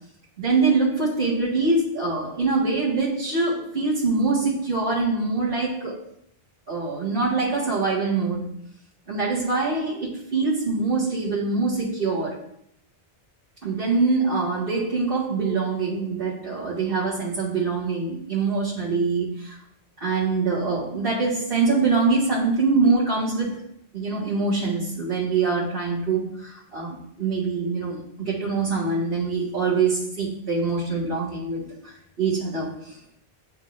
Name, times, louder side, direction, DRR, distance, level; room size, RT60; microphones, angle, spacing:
voice 1, 0.4-6.0 6.7-8.5 9.1-12.4 13.6-19.6 20.0-23.6 23.9-33.0, right 4 dB, 55° right, -11 dB, 2.0 m, -24 dB
11.0 x 3.8 x 2.6 m, 0.70 s
omnidirectional pair, 1.2 m